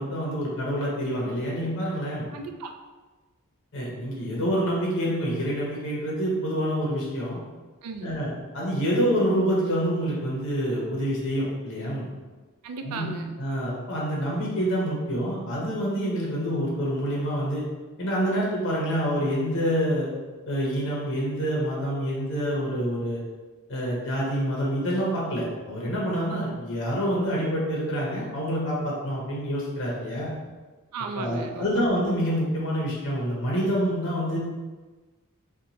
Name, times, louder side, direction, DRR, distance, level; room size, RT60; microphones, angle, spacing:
voice 1, 0.0-2.3 3.7-7.4 8.0-8.3 8.5-12.1 12.8-13.1 13.4-17.6 18.0-20.1 20.5-23.2 23.7-30.3 31.1-34.4, equal, 60° left, -4 dB, 0.7 m, -27 dB
voice 2, 2.3-2.7 7.8-8.2 12.6-13.4 30.9-31.8, right 4 dB, 90° right, 6 dB, 0.3 m, -35 dB
2.9 x 2.2 x 2.6 m, 1.3 s
head